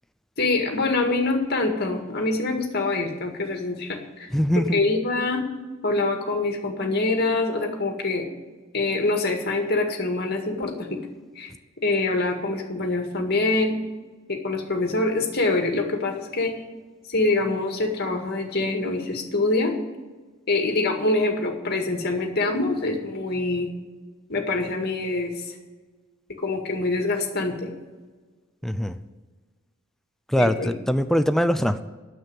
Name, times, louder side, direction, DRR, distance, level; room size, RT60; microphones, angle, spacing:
voice 1, 0.4-4.3 4.7-5.4 5.8-8.3 8.7-11.0 11.4-11.5 11.8-13.8 14.3-16.5 17.1-19.7 20.5-23.7 24.3-25.6 26.4-27.7 30.4-30.7, left 2 dB, 50° left, 3 dB, 2.0 m, -25 dB
voice 2, 4.3-4.8 28.6-29.0 30.3-31.8, equal, ahead, 10 dB, 0.5 m, -22 dB
9.6 x 7.8 x 8.7 m, 1.3 s
head